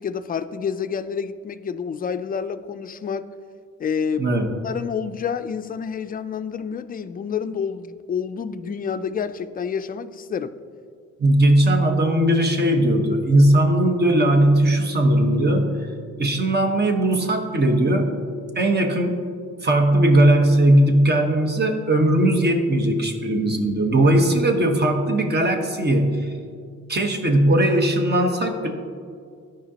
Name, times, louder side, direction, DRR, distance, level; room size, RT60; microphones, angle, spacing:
voice 1, 0.0-3.3 3.8-4.4 4.6-10.6, left 6 dB, 30° left, 10 dB, 0.4 m, -28 dB
voice 2, 4.2-4.5 11.2-15.8 16.2-18.1 18.5-19.2 19.6-26.3 26.9-28.7, right 1 dB, 35° right, 4 dB, 1.1 m, -18 dB
13.0 x 5.1 x 2.9 m, 2.2 s
cardioid pair, 90°, 30 cm